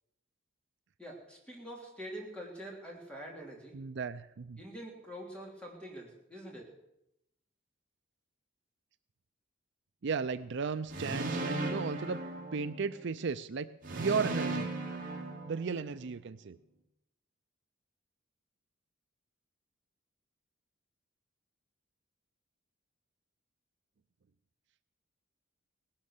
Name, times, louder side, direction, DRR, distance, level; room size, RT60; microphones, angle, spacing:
voice 1, 1.0-3.8 4.6-6.7, equal, 5° left, -1 dB, 3.3 m, -45 dB
voice 2, 3.7-4.6 10.0-12.2 12.5-13.7 14.0-14.7 15.5-16.6, right 5 dB, 60° right, 12 dB, 0.5 m, -35 dB
sound 1, 10.9-13.1 13.8-16.0, right 2 dB, 45° right, 2.5 m, -37 dB
18.0 x 11.5 x 6.6 m, 0.84 s
head